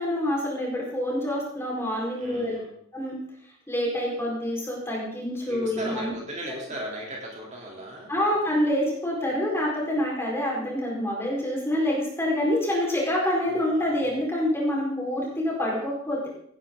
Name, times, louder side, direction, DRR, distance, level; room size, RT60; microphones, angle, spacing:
voice 1, 0.0-2.6 2.9-3.2 3.7-6.1 6.4-6.5 8.1-16.3, left 1 dB, 15° left, -4 dB, 4.8 m, -27 dB
voice 2, 2.2-2.7 5.5-8.1 13.5-13.7, right 1 dB, 35° right, -3 dB, 3.5 m, -37 dB
17.0 x 11.0 x 3.9 m, 0.68 s
head